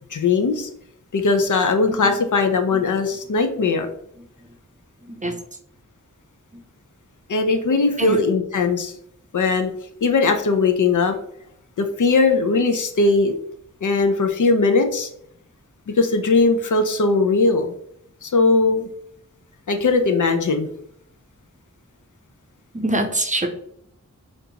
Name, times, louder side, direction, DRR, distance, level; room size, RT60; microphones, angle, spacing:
voice 1, 0.1-0.7 1.1-3.9 7.3-8.9 9.3-9.7 10.0-11.2 11.8-13.3 13.8-15.1 15.9-17.7 18.2-18.9 19.7-20.7, left 3 dB, 75° left, 6 dB, 0.6 m, -19 dB
voice 2, 5.0-5.4 8.0-8.2 22.7-23.5, right 1 dB, 25° right, 5 dB, 0.6 m, -23 dB
5.2 x 2.6 x 2.9 m, 0.69 s
wide cardioid pair, 65°, 31 cm